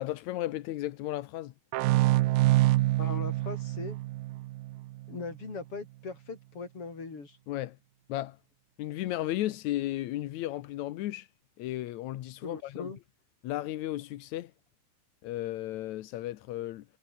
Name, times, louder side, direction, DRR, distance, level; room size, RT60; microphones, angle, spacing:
voice 1, 0.0-1.5 7.5-7.8 8.1-8.4 8.8-11.3 11.6-12.9 13.4-14.5 15.2-16.8, left 15 dB, 70° left, 1.9 m, -34 dB
sound 1, 1.7-5.2, right 17 dB, 90° right, 2.6 m, -26 dB
voice 2, 3.0-4.0 5.1-7.4 12.4-13.0, left 4 dB, 40° left, 5.5 m, -40 dB
omnidirectional pair, 4.1 m